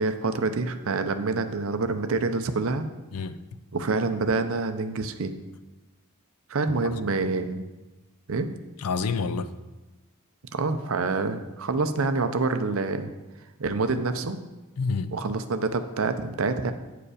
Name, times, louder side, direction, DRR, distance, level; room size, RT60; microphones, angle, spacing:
voice 1, 0.0-2.9 3.7-5.3 6.5-7.7 8.3-8.5 10.5-13.1 13.6-14.4 15.1-16.7, right 3 dB, 65° right, 9 dB, 0.6 m, -27 dB
voice 2, 3.1-3.6 6.7-7.2 8.8-9.5 14.8-15.1, left 4 dB, 90° left, 12 dB, 0.5 m, -29 dB
8.9 x 4.9 x 4.9 m, 1.1 s
head